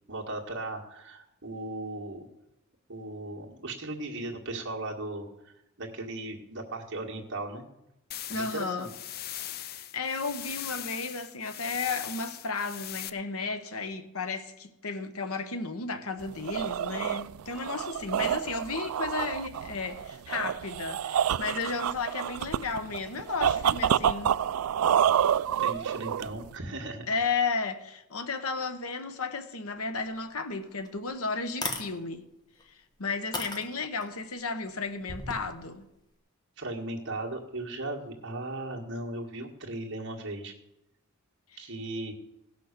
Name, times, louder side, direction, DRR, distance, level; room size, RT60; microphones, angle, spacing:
voice 1, 0.1-2.3 2.9-5.5 5.8-7.7 8.3-8.9 25.6-27.1 36.6-40.5 41.6-42.1, right 2 dB, 55° right, 1.9 m, -37 dB
sound 1, 8.1-13.1, left 12 dB, 45° left, 0.4 m, -40 dB
voice 2, 8.3-8.9 9.6-24.4 27.1-32.3 32.7-35.9 41.5-41.6, left 4 dB, 75° left, 1.1 m, -33 dB
sound 2, 16.2-26.6, right 9 dB, 80° right, 0.3 m, -28 dB
sound 3, 30.3-30.4 30.9-31.0 31.5-31.9 32.6-32.7 33.3-34.1 35.0-35.4, left 2 dB, 20° left, 1.2 m, -34 dB
16.5 x 6.2 x 6.7 m
head